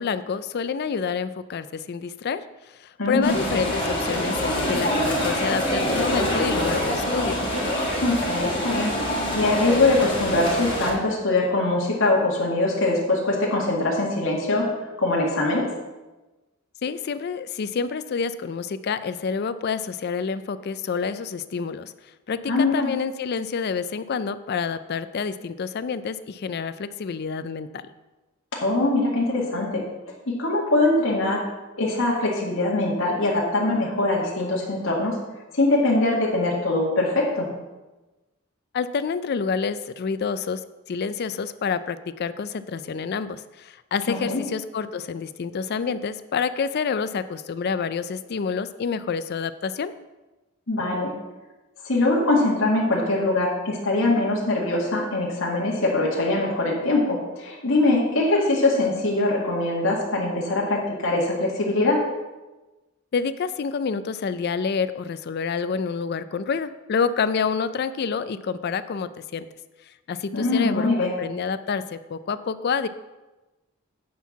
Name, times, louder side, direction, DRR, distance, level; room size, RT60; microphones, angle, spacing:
voice 1, 0.0-7.4 16.8-21.9 22.3-27.9 38.7-49.9 63.1-69.5 70.1-72.9, left 5 dB, 55° left, 14 dB, 0.4 m, -28 dB
voice 2, 3.0-3.4 8.0-14.7 15.0-15.7 22.5-22.9 28.5-29.9 30.3-31.4 31.8-35.2 35.5-37.5 44.1-44.4 50.7-51.1 51.8-62.0 70.3-71.1, left 2 dB, 75° left, -4 dB, 2.0 m, -22 dB
sound 1, 3.2-10.9, equal, 25° left, 3.3 m, -25 dB
9.3 x 4.5 x 7.2 m, 1.1 s
head